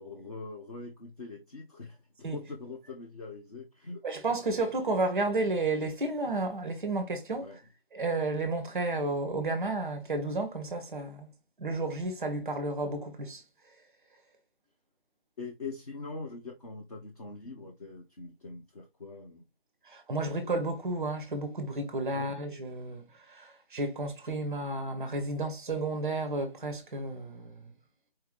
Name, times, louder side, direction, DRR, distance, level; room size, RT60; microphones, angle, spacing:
voice 1, 0.0-2.0 2.3-4.0 7.4-7.6 15.4-19.4 22.1-22.3, left 3 dB, 40° left, 0.7 m, -42 dB
voice 2, 4.0-7.6 7.9-11.3 11.6-13.4 19.9-27.7, right 2 dB, 5° right, 0.7 m, -32 dB
4.4 x 3.4 x 3.1 m
figure-of-eight pair, 155°, 30 cm